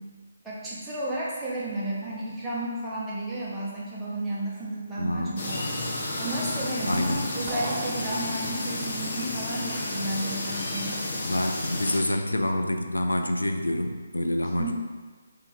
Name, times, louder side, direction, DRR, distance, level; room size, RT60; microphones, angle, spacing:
voice 1, 0.4-5.7 6.2-11.1 14.6-14.7, right 1 dB, 5° right, -9 dB, 0.9 m, -32 dB
voice 2, 5.0-5.4 6.9-7.3 11.2-14.7, left 1 dB, 80° left, 5 dB, 0.3 m, -27 dB
sound 1, 5.4-12.0, left 2 dB, 45° left, 0.8 m, -31 dB
sound 2, 7.5-8.8, right 4 dB, 35° right, 0.4 m, -37 dB
3.6 x 2.8 x 4.2 m, 1.4 s
figure-of-eight pair, 145°, 0 cm